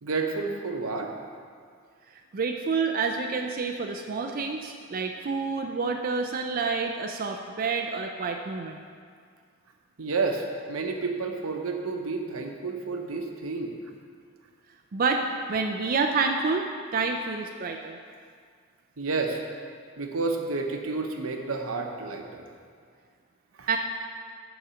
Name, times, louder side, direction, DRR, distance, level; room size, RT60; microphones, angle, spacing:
voice 1, 0.0-1.1 10.0-13.7 19.0-19.4 20.0-22.4 23.6-23.7, right 3 dB, 85° right, 3 dB, 0.9 m, -30 dB
voice 2, 2.3-8.8 14.9-18.0 23.7-23.8, right 4 dB, 45° right, 3 dB, 0.4 m, -28 dB
7.1 x 5.0 x 7.0 m, 2.1 s
head